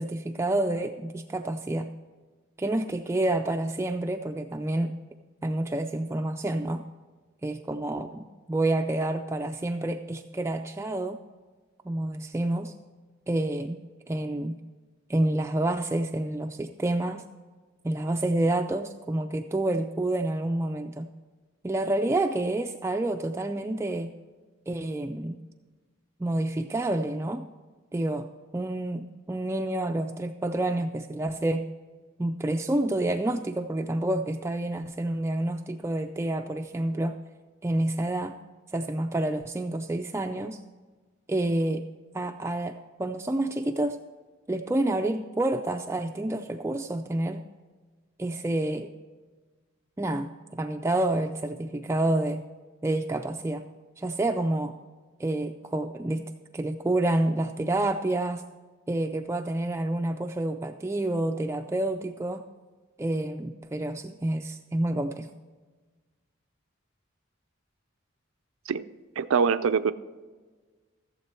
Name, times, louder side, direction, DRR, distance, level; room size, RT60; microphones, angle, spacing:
voice 1, 0.0-1.9 2.6-4.9 5.4-6.8 7.4-11.2 11.9-12.7 13.3-13.8 14.1-14.6 15.1-17.2 17.8-21.1 21.6-24.1 24.7-25.4 26.2-27.5 27.9-28.3 28.5-31.6 32.2-37.2 37.6-38.4 38.7-40.6 41.3-41.8 42.1-44.0 44.5-47.4 48.2-48.9 50.0-52.4 52.8-53.7 54.0-54.7 55.2-56.2 56.5-58.4 58.9-62.4 63.0-65.3, right 1 dB, 15° right, 5 dB, 0.3 m, -28 dB
voice 2, 69.2-69.9, right 6 dB, 85° right, 12 dB, 0.4 m, -23 dB
15.0 x 7.6 x 4.3 m, 1.4 s
head